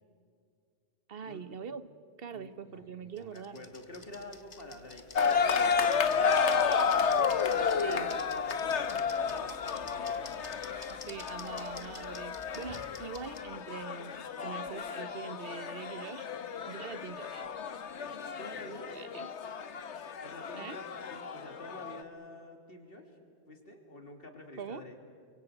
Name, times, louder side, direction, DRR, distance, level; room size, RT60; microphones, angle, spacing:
voice 1, 1.1-1.8 2.2-3.7 7.8-8.1 10.9-16.3 16.7-17.5 18.9-19.3 20.5-20.8 24.6-24.8, right 6 dB, 60° right, 13 dB, 1.2 m, -43 dB
voice 2, 2.3-10.6 18.4-18.9 20.2-23.1 23.5-25.0, left 1 dB, 55° left, 4 dB, 3.2 m, -49 dB
sound 1, 3.2-13.4, left 3 dB, 30° left, 1.3 m, -50 dB
sound 2, 5.2-22.0, left 6 dB, 85° left, 1.3 m, -32 dB
29.0 x 24.0 x 8.1 m, 2.2 s
omnidirectional pair, 1.1 m